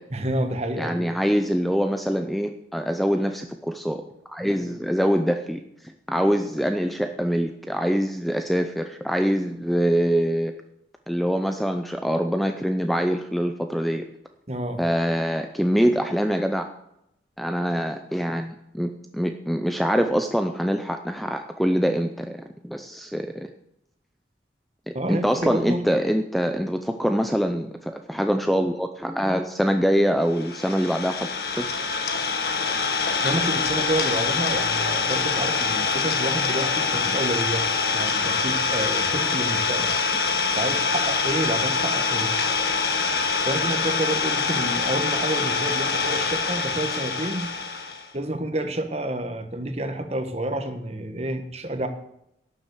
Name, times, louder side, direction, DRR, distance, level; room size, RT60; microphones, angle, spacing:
voice 1, 0.1-1.1 14.5-14.8 24.9-25.8 33.2-40.0 40.5-42.3 43.4-47.5 48.1-51.9, right 1 dB, 35° right, 7 dB, 1.3 m, -29 dB
voice 2, 0.8-10.5 11.1-14.0 14.8-16.7 17.4-23.5 24.9-31.7, equal, ahead, 6 dB, 0.5 m, -24 dB
Idling, 30.3-48.1, left 5 dB, 55° left, 1.6 m, -25 dB
12.0 x 7.5 x 8.0 m, 0.80 s
head